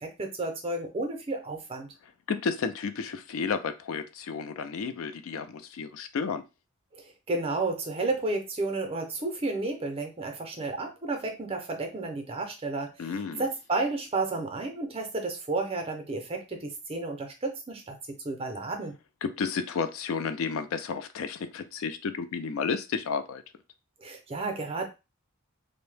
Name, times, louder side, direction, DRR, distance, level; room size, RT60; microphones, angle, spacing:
voice 1, 0.0-1.9 6.9-18.9 24.0-24.8, right 3 dB, 25° right, 0.5 m, -32 dB
voice 2, 2.3-6.4 13.0-13.4 19.2-23.4, left 5 dB, 65° left, 0.3 m, -32 dB
2.7 x 2.0 x 3.2 m
head